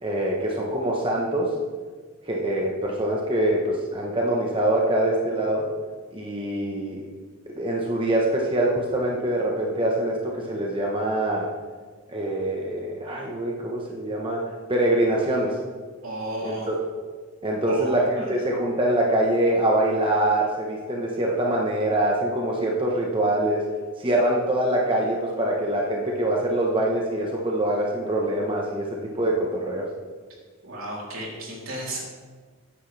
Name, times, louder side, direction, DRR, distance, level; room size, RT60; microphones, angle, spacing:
voice 1, 0.0-1.5 2.3-5.7 6.1-7.0 7.6-11.5 12.1-14.4 14.7-15.6 16.4-16.8 17.4-23.6 24.0-29.9, right 1 dB, 25° right, -2 dB, 1.2 m, -24 dB
voice 2, 16.0-16.7 17.7-18.4 30.6-32.0, right 1 dB, 75° right, -3 dB, 3.5 m, -33 dB
14.5 x 9.8 x 3.4 m, 1.5 s
head